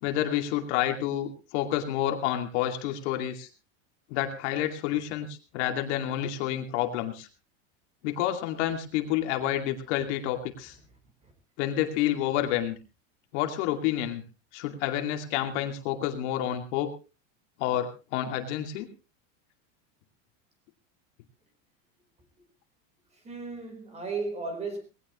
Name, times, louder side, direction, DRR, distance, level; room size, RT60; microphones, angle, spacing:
voice 1, 0.0-3.5 4.1-7.3 8.0-10.7 11.6-12.8 13.3-14.2 14.5-16.9 17.6-18.9, left 12 dB, 65° left, 5 dB, 2.5 m, -29 dB
voice 2, 23.1-24.8, right 4 dB, 15° right, 8 dB, 4.2 m, -35 dB
19.5 x 16.5 x 3.1 m, 0.31 s
supercardioid pair, 165°, 37 cm